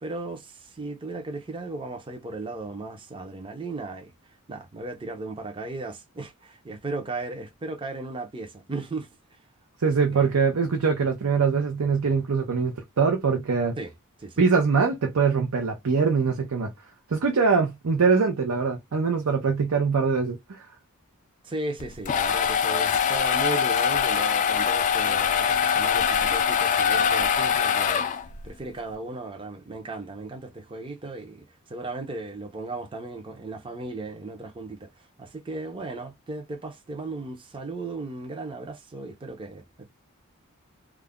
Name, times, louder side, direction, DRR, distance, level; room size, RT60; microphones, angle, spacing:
voice 1, 0.0-4.1 4.5-9.1 9.8-10.3 13.8-13.9 14.2-14.4 21.4-28.1 28.4-39.9, right 2 dB, 25° right, 0.5 m, -36 dB
voice 2, 9.8-13.8 14.4-16.7 17.1-20.7, right 5 dB, 80° right, 0.6 m, -23 dB
sound 1, 21.8-28.5, left 7 dB, 35° left, 0.3 m, -23 dB
2.3 x 2.1 x 3.5 m
head